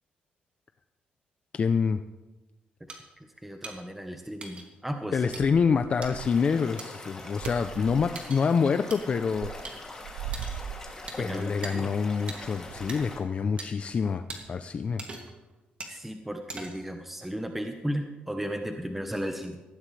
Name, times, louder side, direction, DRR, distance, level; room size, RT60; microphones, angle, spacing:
voice 1, 1.5-2.0 5.1-9.5 11.2-15.0, left 5 dB, 35° left, 9 dB, 0.5 m, -26 dB
sound 1, 2.9-3.0 3.6-3.8 4.4-4.7 5.3-5.4 6.0-6.1 6.8-6.9 7.4-7.5 8.2-8.4 8.9-9.0 9.6-9.8 10.3-10.6 11.1-11.2 11.6-11.7 12.3-12.4 12.9-13.0 13.6-13.7 14.3-14.4 15.0-15.4 15.8-16.0 16.5-16.9, right 3 dB, 35° right, 2.5 m, -40 dB
voice 2, 3.2-5.3 11.2-11.9 15.9-19.6, equal, 5° right, 4 dB, 1.0 m, -35 dB
sound 2, 5.3-6.5 7.1-8.2 8.9-13.2, right 9 dB, 85° right, 0.7 m, -41 dB
Stream / Liquid, 6.2-13.2, left 2 dB, 15° left, 2.7 m, -43 dB
19.0 x 15.5 x 3.3 m, 1.1 s
cardioid pair, 125°, 3 cm